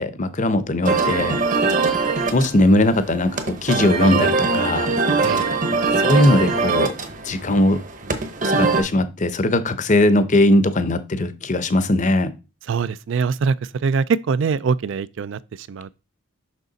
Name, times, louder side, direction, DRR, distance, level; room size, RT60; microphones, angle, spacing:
voice 1, 0.0-1.4 2.3-4.9 6.0-6.9 7.2-7.8 8.5-12.3, left 1 dB, 35° left, 0.7 m, -19 dB
sound 1, 0.8-8.8, right 4 dB, 40° right, 0.9 m, -22 dB
voice 2, 12.7-13.6 13.8-16.0, right 5 dB, 60° right, 0.3 m, -23 dB
6.6 x 5.9 x 4.0 m
head